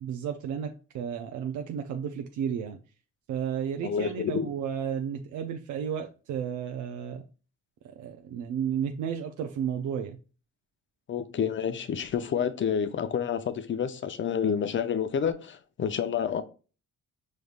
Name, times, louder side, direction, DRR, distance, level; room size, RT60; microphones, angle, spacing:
voice 1, 0.0-2.8 3.3-7.2 7.8-10.2, right 8 dB, 75° right, 0.5 m, -33 dB
voice 2, 3.8-4.5 11.1-16.4, left 7 dB, 40° left, 0.5 m, -29 dB
5.1 x 3.2 x 2.4 m
cardioid pair, 90°, 30 cm